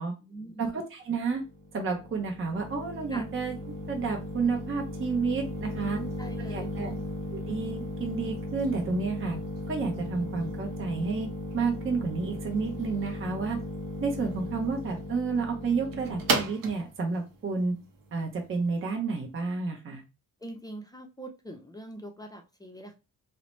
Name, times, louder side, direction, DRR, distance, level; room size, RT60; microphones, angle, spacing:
voice 1, 0.0-0.6 3.1-3.2 5.8-7.0 20.4-22.9, right 1 dB, 10° left, 3 dB, 0.5 m, -43 dB
voice 2, 0.6-1.4 1.7-3.6 3.9-6.0 6.5-6.9 7.5-9.4 9.7-11.3 11.5-13.6 14.0-17.7 18.1-20.0, right 4 dB, 40° right, 1 dB, 0.7 m, -30 dB
sound 1, 1.2-18.8, equal, 80° right, 0.7 m, -36 dB
2.7 x 2.1 x 3.0 m, 0.29 s
cardioid pair, 85°, 33 cm